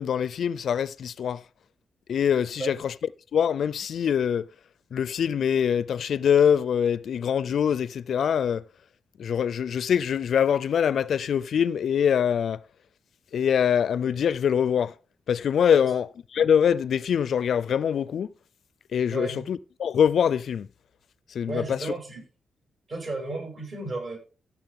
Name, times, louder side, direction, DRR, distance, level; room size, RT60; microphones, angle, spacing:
voice 1, 0.0-1.4 2.1-2.9 3.3-4.4 4.9-8.6 9.2-12.6 13.3-14.9 15.3-18.3 18.9-20.7 21.3-21.8, left 8 dB, 70° left, 0.4 m, -24 dB
voice 2, 19.1-19.4 21.5-22.2 22.9-24.2, right 2 dB, 50° right, 7.6 m, -33 dB
15.5 x 7.3 x 3.7 m
cardioid pair, 105°, 0 cm